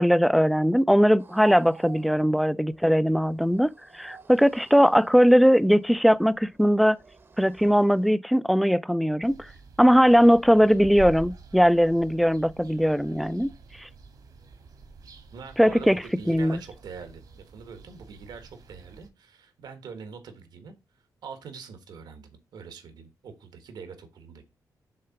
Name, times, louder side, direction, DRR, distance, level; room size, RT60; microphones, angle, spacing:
voice 1, 0.0-7.0 7.4-9.4 9.8-13.5 13.8-13.9 15.6-16.0 16.3-16.6, equal, ahead, 0.3 m, -20 dB
sound 1, 1.2-8.2, right 5 dB, 35° right, 0.8 m, -48 dB
sound 2, 9.2-19.1, right 4 dB, 65° right, 1.4 m, -46 dB
voice 2, 15.3-20.7 21.2-24.4, right 6 dB, 80° right, 1.5 m, -44 dB
6.6 x 3.9 x 5.7 m
wide cardioid pair, 130°, 7 cm